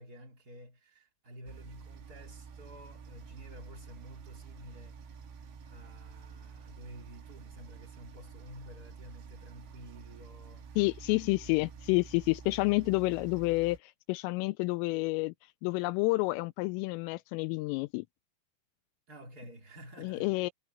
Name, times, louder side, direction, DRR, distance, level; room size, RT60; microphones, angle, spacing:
voice 1, 0.0-5.0 5.7-10.8 11.4-11.6 19.1-20.4, right 1 dB, 30° right, 2.0 m, -51 dB
sound 1, 1.5-13.8, right 5 dB, 85° right, 6.3 m, -49 dB
voice 2, 10.8-15.3 15.6-18.1 20.0-20.5, left 24 dB, 85° left, 3.1 m, -29 dB
omnidirectional pair, 5.9 m